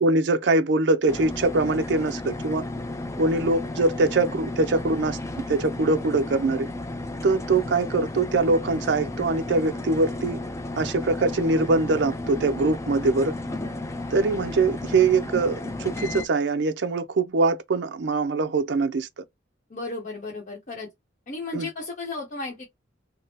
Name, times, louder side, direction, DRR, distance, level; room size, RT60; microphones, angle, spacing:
voice 1, 0.0-2.6 3.2-5.2 5.5-6.7 7.2-10.4 10.8-13.3 14.1-19.1 21.5-21.7, right 3 dB, 65° right, 0.4 m, -23 dB
sound 1, 1.1-16.3, left 2 dB, 15° left, 0.4 m, -33 dB
voice 2, 19.7-20.9 21.3-22.7, left 3 dB, 45° left, 0.9 m, -34 dB
3.5 x 2.0 x 2.7 m
head